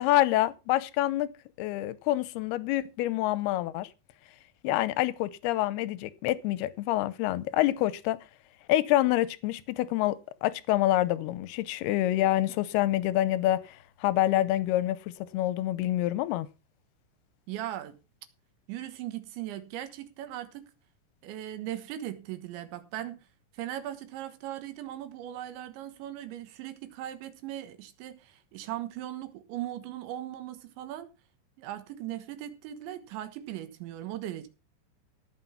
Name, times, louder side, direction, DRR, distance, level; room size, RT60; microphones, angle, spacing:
voice 1, 0.0-1.3 1.6-3.9 4.6-8.2 8.7-16.5, left 15 dB, 80° left, 2.5 m, -27 dB
voice 2, 17.5-18.0 18.7-20.7 21.2-23.3 23.5-31.1 31.6-34.5, right 12 dB, 85° right, 3.7 m, -38 dB
17.0 x 6.1 x 5.6 m
omnidirectional pair, 5.2 m